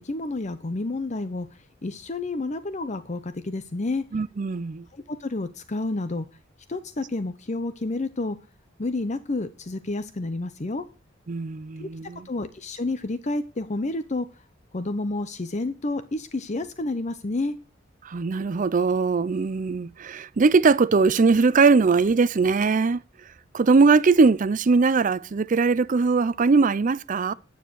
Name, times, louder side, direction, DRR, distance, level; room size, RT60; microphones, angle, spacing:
voice 1, 0.0-1.5 1.8-4.1 4.9-6.3 6.7-8.4 8.8-10.9 11.8-11.9 12.2-14.3 14.7-17.5, left 2 dB, 40° left, 0.7 m, -30 dB
voice 2, 4.1-4.8 11.3-12.2 18.1-23.0 23.5-27.3, right 4 dB, 45° right, 0.5 m, -20 dB
9.4 x 9.4 x 6.2 m
head